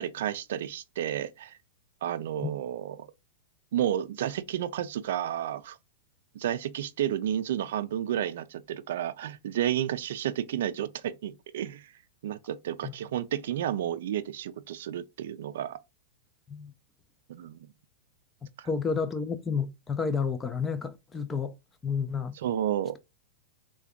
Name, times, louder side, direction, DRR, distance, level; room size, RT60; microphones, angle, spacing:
voice 1, 0.0-1.6 2.0-3.1 3.7-5.8 6.3-11.9 12.2-15.8 17.3-17.6 18.6-18.7 22.3-23.0, right 11 dB, 70° right, 0.3 m, -31 dB
voice 2, 18.7-21.5 21.8-22.3, left 5 dB, 15° left, 0.4 m, -30 dB
3.4 x 2.2 x 3.5 m
hypercardioid pair, 140°, 0 cm